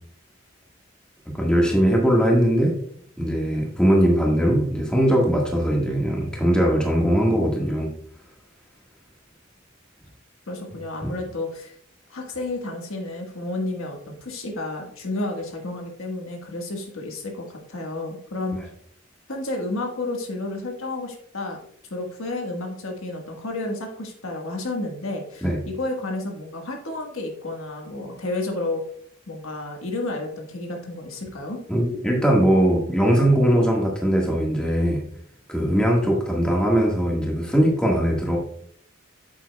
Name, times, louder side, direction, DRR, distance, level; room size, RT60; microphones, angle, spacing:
voice 1, 1.2-2.7 3.2-7.9 11.0-11.1 25.4-25.6 31.7-35.0 35.5-38.4, equal, 5° left, -2 dB, 1.5 m, -20 dB
voice 2, 10.5-11.7 12.1-18.6 19.3-21.6 21.9-28.8 29.3-31.6, left 2 dB, 75° left, 2 dB, 1.5 m, -31 dB
8.8 x 7.4 x 2.3 m, 0.63 s
head